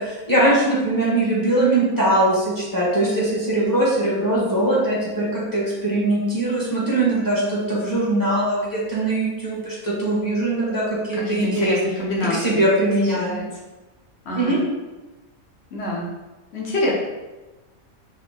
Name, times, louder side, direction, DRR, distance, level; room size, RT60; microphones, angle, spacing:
voice 1, 0.0-11.8 12.3-13.4 14.3-14.6, right 1 dB, 15° left, -7 dB, 1.2 m, -21 dB
voice 2, 11.3-12.6 13.3-13.4 14.2-14.6 15.7-16.1 16.5-16.9, left 1 dB, 50° left, -3 dB, 1.2 m, -26 dB
4.0 x 3.1 x 3.5 m, 1.1 s
omnidirectional pair, 1.5 m